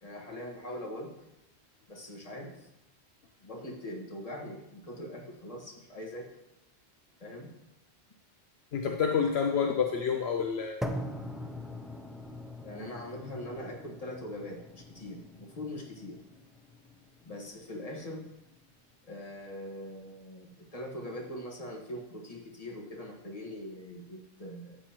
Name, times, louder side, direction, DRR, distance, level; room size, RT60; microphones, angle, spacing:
voice 1, 0.0-1.2 1.9-2.7 3.4-6.3 7.2-7.6 12.6-16.2 17.2-18.3 19.0-24.8, left 1 dB, 35° left, -1 dB, 1.7 m, -42 dB
voice 2, 8.7-10.8, left 6 dB, 70° left, 3 dB, 1.0 m, -28 dB
sound 1, 10.8-18.8, left 1 dB, ahead, 0.4 m, -42 dB
13.5 x 7.5 x 3.0 m, 0.89 s
omnidirectional pair, 1.1 m